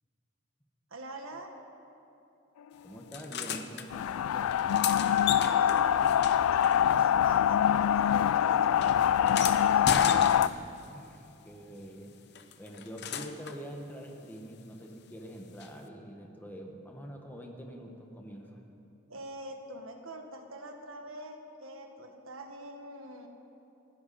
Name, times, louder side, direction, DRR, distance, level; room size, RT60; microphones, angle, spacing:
voice 1, 0.9-1.5 5.2-6.1 6.5-9.0 9.3-10.0 19.1-23.3, right 1 dB, 75° right, 4 dB, 1.6 m, -45 dB
voice 2, 2.8-4.8 10.9-12.1 12.6-18.6, equal, 10° left, 1 dB, 1.3 m, -45 dB
sound 1, 3.1-3.9 4.5-7.4 7.7-10.9 12.3-13.6 15.6-15.7, left 7 dB, 50° left, 0.8 m, -36 dB
sound 2, 3.9-10.5, left 9 dB, 85° left, 0.3 m, -24 dB
30.0 x 10.5 x 4.3 m, 2.9 s
head